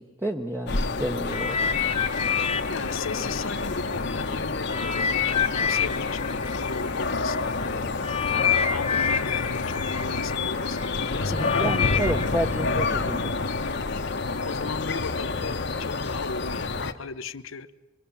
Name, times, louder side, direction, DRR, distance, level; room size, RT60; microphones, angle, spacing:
voice 1, 0.0-1.6 11.3-13.3, right 1 dB, 10° right, 2 dB, 1.0 m, -30 dB
sound 1, 0.7-16.9, left 3 dB, 60° left, 1.2 m, -28 dB
sound 2, 1.3-4.2 4.7-13.7 14.4-14.5, left 7 dB, 30° left, 1.3 m, -29 dB
voice 2, 2.6-12.0 12.6-13.3 14.4-17.7, left 4 dB, 85° left, 14 dB, 0.9 m, -37 dB
25.5 x 23.5 x 7.1 m, 1.0 s
head